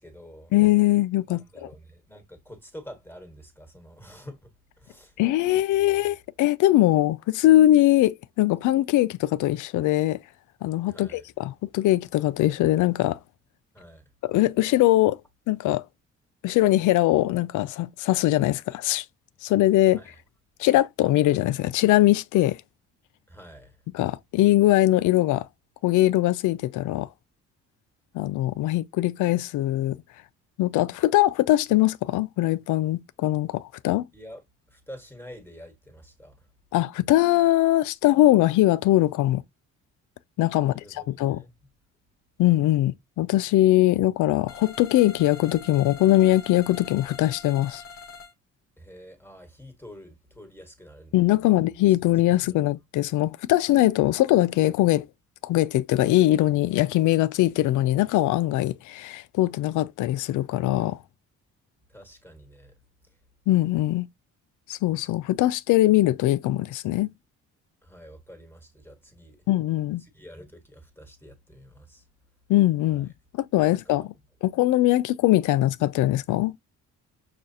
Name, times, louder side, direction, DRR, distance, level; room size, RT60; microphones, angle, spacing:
voice 1, 0.0-0.5 1.3-4.5 4.8-5.2 5.5-5.6 5.9-6.1 10.9-11.2 13.7-14.1 19.9-20.2 23.3-23.8 34.1-34.4 34.7-36.5 40.5-41.5 48.8-52.0 61.9-62.7 63.1-63.2 67.8-69.5 70.0-72.1 72.9-73.0 73.6-74.1, equal, 5° left, 1.4 m, -47 dB
voice 2, 0.5-1.4 5.2-10.2 10.6-13.2 14.2-15.2 15.5-15.8 16.4-19.1 19.4-20.0 20.6-22.6 23.9-25.5 25.8-27.1 28.1-30.0 30.6-34.1 36.7-39.4 40.4-41.4 42.4-47.8 51.1-55.1 55.4-61.0 63.5-64.1 64.7-67.1 69.5-70.0 72.5-74.1 74.4-76.5, left 15 dB, 85° left, 0.5 m, -21 dB
sound 1, 44.5-48.3, left 5 dB, 50° left, 1.0 m, -44 dB
6.2 x 2.4 x 2.7 m
cardioid pair, 90°, 30 cm